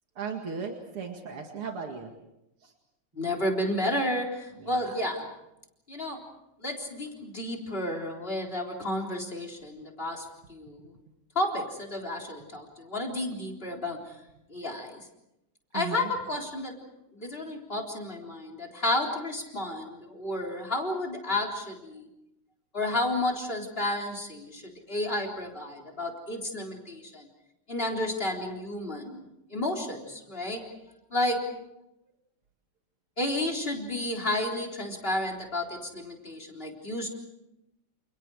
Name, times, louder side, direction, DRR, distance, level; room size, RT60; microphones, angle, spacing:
voice 1, 0.2-2.1 2.6-2.7 4.6-5.0 15.7-16.1, right 6 dB, 85° right, 2 dB, 3.0 m, -37 dB
voice 2, 3.2-5.3 5.9-6.2 6.6-10.9 11.4-14.0 14.5-15.0 15.7-16.8 17.1-22.1 22.7-27.3 27.7-29.3 29.5-30.6 31.1-31.5 33.2-37.1, left 1 dB, 25° left, 4 dB, 4.0 m, -31 dB
29.0 x 29.0 x 4.8 m, 0.87 s
omnidirectional pair, 2.4 m